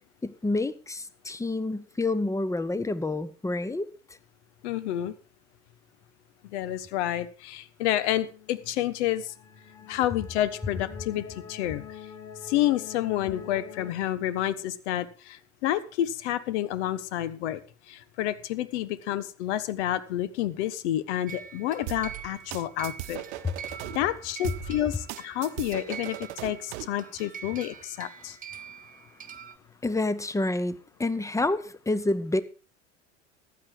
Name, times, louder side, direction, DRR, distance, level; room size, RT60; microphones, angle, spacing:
voice 1, 0.2-3.9 23.4-23.5 29.8-32.4, left 2 dB, 10° left, 1.1 m, -28 dB
voice 2, 4.6-5.1 6.4-9.3 9.9-11.8 12.4-17.6 17.9-23.2 23.9-28.4, left 13 dB, 70° left, 1.3 m, -29 dB
sound 1, 8.0-13.9, left 7 dB, 50° left, 2.5 m, -46 dB
sound 2, 21.3-29.6, right 7 dB, 25° right, 1.8 m, -44 dB
sound 3, 21.9-24.0 24.4-27.0, right 15 dB, 70° right, 0.9 m, -38 dB
15.0 x 10.0 x 4.7 m
hypercardioid pair, 75°, 36 cm